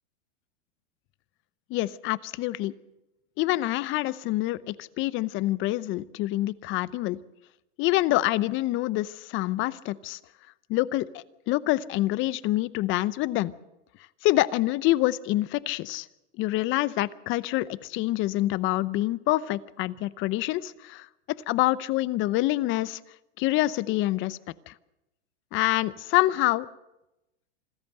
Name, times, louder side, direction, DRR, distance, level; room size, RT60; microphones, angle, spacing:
voice 1, 1.7-2.7 3.4-7.2 7.8-10.2 10.7-13.5 14.2-16.1 16.4-23.0 23.4-24.4 24.7-24.8 25.5-26.7, left 17 dB, 35° left, 19 dB, 0.8 m, -26 dB
26.5 x 14.0 x 7.8 m, 0.95 s
hypercardioid pair, 125°, 35 cm